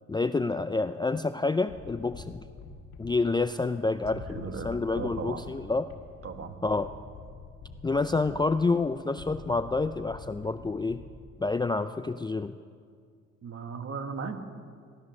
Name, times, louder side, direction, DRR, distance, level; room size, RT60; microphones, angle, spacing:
voice 1, 0.1-2.4 3.0-5.8 6.6-6.9 7.8-11.0 11.4-12.5, left 3 dB, 15° left, 10 dB, 0.4 m, -28 dB
sound 1, 1.7-11.6, left 4 dB, 90° left, 1.9 m, -47 dB
voice 2, 4.1-5.5 6.2-6.6 13.4-14.4, right 5 dB, 50° right, 7 dB, 1.5 m, -37 dB
16.5 x 12.5 x 6.5 m, 2.1 s
cardioid pair, 90°, 30 cm